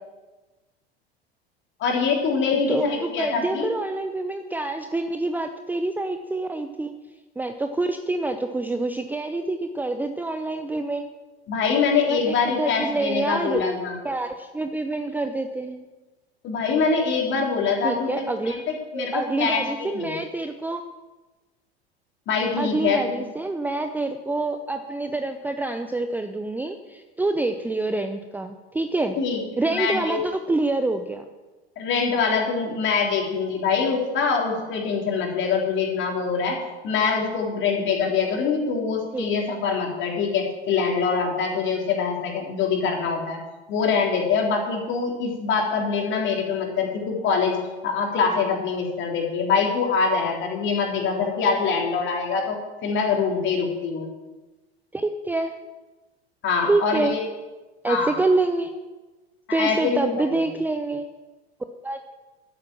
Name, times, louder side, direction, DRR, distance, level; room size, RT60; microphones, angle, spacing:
voice 1, 1.8-3.7 11.5-14.0 16.4-18.6 18.9-20.2 22.3-23.2 29.2-29.4 29.7-30.2 31.8-36.6 36.8-43.4 43.7-47.6 47.8-54.1 56.4-57.2 57.9-58.1 59.5-60.4, left 5 dB, 35° left, 1 dB, 3.7 m, -24 dB
voice 2, 2.5-6.9 7.4-11.1 12.1-13.6 14.0-15.8 17.8-18.5 18.9-20.8 22.6-29.2 29.6-31.3 39.1-39.6 54.9-55.5 56.6-57.1 57.8-58.7 59.5-61.1 61.8-62.2, right 2 dB, 5° right, 7 dB, 0.7 m, -26 dB
12.0 x 9.7 x 7.5 m, 1.2 s
figure-of-eight pair, 80°, 32 cm